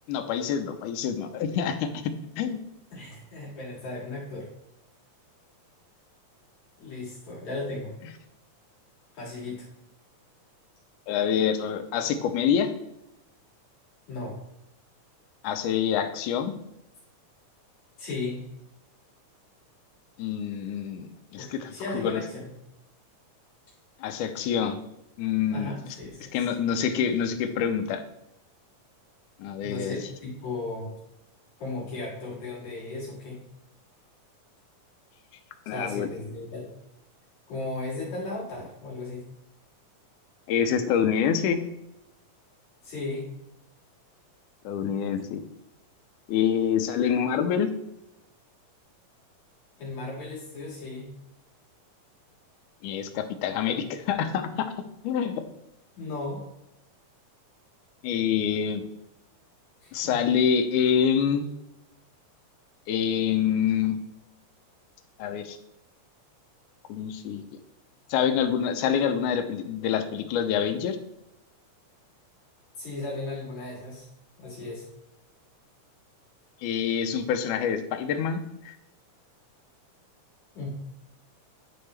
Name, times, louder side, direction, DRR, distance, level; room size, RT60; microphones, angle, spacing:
voice 1, 0.1-2.6 11.1-12.7 15.4-16.5 20.2-22.2 24.0-24.8 25.2-25.7 26.3-28.0 29.4-30.0 35.7-36.1 40.5-41.6 44.6-45.4 46.3-47.7 52.8-54.7 55.0-55.4 58.0-58.8 59.9-61.5 62.9-64.0 65.2-65.6 66.9-67.4 68.1-71.0 76.6-78.7, left 8 dB, 80° left, 7 dB, 2.1 m, -26 dB
voice 2, 2.9-4.5 6.8-7.9 9.1-9.7 14.1-14.4 18.0-18.4 21.4-22.5 25.5-26.3 29.6-30.9 31.6-33.4 35.7-36.7 37.5-39.2 42.8-43.3 47.0-47.1 49.8-51.1 56.0-56.4 59.8-60.2 72.8-74.1 74.4-74.9 80.6-80.7, left 2 dB, 60° left, -6 dB, 3.3 m, -35 dB
11.0 x 4.3 x 3.3 m, 0.86 s
omnidirectional pair, 3.7 m